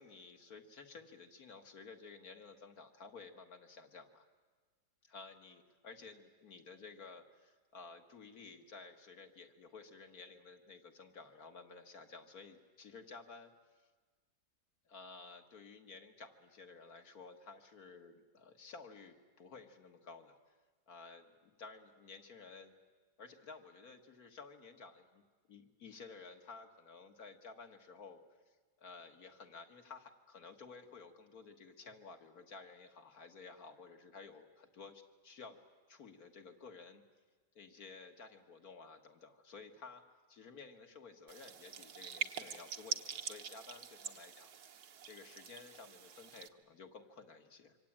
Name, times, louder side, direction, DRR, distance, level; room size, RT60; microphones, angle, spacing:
voice 1, 0.0-4.3 5.0-13.5 14.9-20.5 20.9-22.7 23.2-25.2 25.5-35.6 35.9-37.0 37.6-40.0 40.3-44.7 45.0-47.8, left 4 dB, 60° left, 5 dB, 2.3 m, -54 dB
sound 1, 41.3-46.5, right 7 dB, 70° right, 1.6 m, -44 dB
26.0 x 25.0 x 8.8 m, 1.4 s
omnidirectional pair, 1.8 m